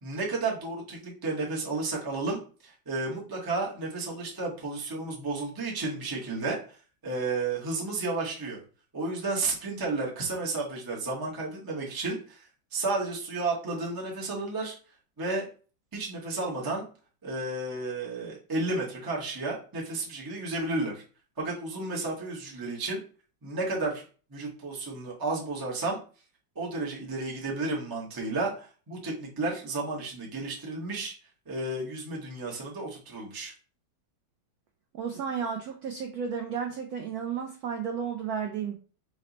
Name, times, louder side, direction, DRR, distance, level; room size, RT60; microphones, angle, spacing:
voice 1, 0.0-6.6 7.0-8.6 8.9-14.7 15.2-15.5 15.9-16.8 17.2-21.0 21.4-23.0 23.4-24.0 24.3-26.0 26.6-31.1 31.5-33.5, right 3 dB, 25° right, -3 dB, 0.5 m, -32 dB
voice 2, 34.9-38.8, right 7 dB, 75° right, 3 dB, 0.8 m, -33 dB
4.2 x 2.1 x 3.9 m, 0.38 s
omnidirectional pair, 2.1 m